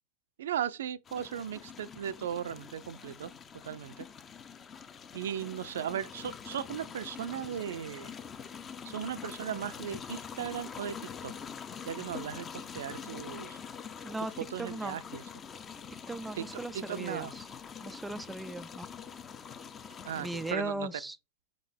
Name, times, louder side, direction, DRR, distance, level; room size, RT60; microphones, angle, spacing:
voice 1, 0.4-3.3 3.6-3.9 5.1-8.1 8.8-11.0 11.2-11.3 11.9-13.6 14.5-15.2 16.7-17.3 20.0-20.9, right 9 dB, 60° right, 0.5 m, -37 dB
sound 1, 1.1-20.5, left 7 dB, 25° left, 0.7 m, -45 dB
voice 2, 14.6-15.0 16.1-17.5 17.8-18.9 20.2-21.2, right 2 dB, 5° right, 0.3 m, -38 dB
5.3 x 5.3 x 4.3 m
figure-of-eight pair, 90°, 0 cm